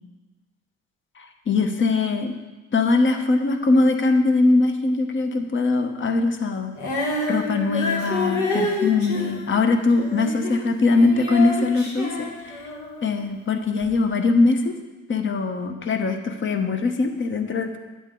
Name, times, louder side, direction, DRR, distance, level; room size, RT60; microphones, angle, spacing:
voice 1, 1.2-2.4 2.7-6.7 7.3-12.6 13.0-14.8 15.1-17.8, left 3 dB, 40° left, 6 dB, 1.0 m, -21 dB
Female singing, 6.7-13.1 13.8-13.9, left 2 dB, 80° left, 1.7 m, -28 dB
9.2 x 7.4 x 3.8 m, 1.2 s
cardioid pair, 90°, 30 cm